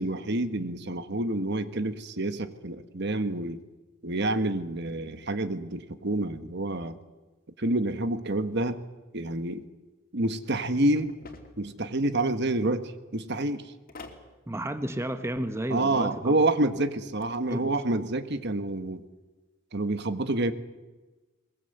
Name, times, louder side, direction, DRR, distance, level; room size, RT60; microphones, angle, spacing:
voice 1, 0.0-3.6 4.0-7.0 7.6-8.8 9.1-9.6 10.1-11.1 11.6-13.7 15.7-19.0 19.7-20.5, right 2 dB, 55° right, 10 dB, 1.4 m, -28 dB
sound 1, 11.0-11.7 13.9-14.3 16.9-17.4, left 2 dB, 45° left, 2.8 m, -46 dB
voice 2, 14.5-16.4 17.5-17.7, right 1 dB, 15° right, 9 dB, 1.3 m, -32 dB
22.0 x 22.0 x 8.0 m, 1.2 s
head